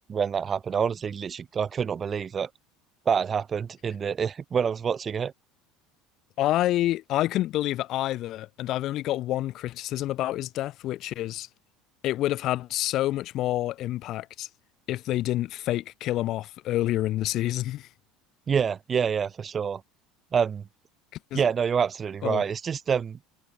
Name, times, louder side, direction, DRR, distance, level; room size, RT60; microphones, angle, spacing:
voice 1, 0.0-2.5 3.1-5.3 18.5-19.8 20.3-20.6 21.3-23.2, right 7 dB, 35° right, 0.5 m, -27 dB
voice 2, 6.4-11.5 12.0-14.5 14.9-17.9 21.3-21.5 22.2-22.4, left 14 dB, 55° left, 1.2 m, -28 dB
supercardioid pair, 90°, 0 cm